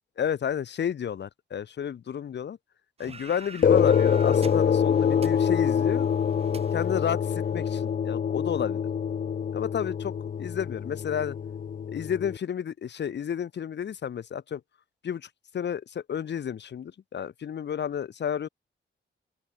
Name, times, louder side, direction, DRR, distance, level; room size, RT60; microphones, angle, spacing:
voice 1, 0.2-2.6 3.0-6.1 6.7-7.2 7.5-8.8 9.5-11.4 11.9-14.6 15.0-18.5, left 8 dB, 60° left, 1.3 m, -31 dB
sound 1, 3.0-7.9, right 4 dB, 30° right, 2.6 m, -46 dB
sound 2, 3.6-12.4, left 7 dB, 40° left, 0.7 m, -25 dB
open air
wide cardioid pair, 180°, 21 cm